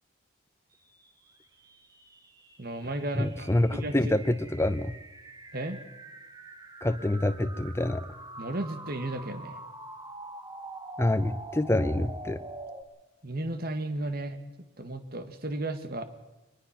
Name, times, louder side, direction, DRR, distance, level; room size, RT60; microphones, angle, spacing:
sound 1, 0.9-12.8, right 2 dB, 20° right, 1.5 m, -45 dB
voice 1, 2.6-4.0 5.5-5.8 8.4-9.6 13.2-14.4 14.8-16.0, right 1 dB, 45° right, 9 dB, 1.7 m, -34 dB
voice 2, 3.1-4.9 6.8-8.1 11.0-12.4, left 1 dB, 10° left, 11 dB, 0.7 m, -26 dB
23.0 x 20.0 x 6.0 m, 1.0 s
head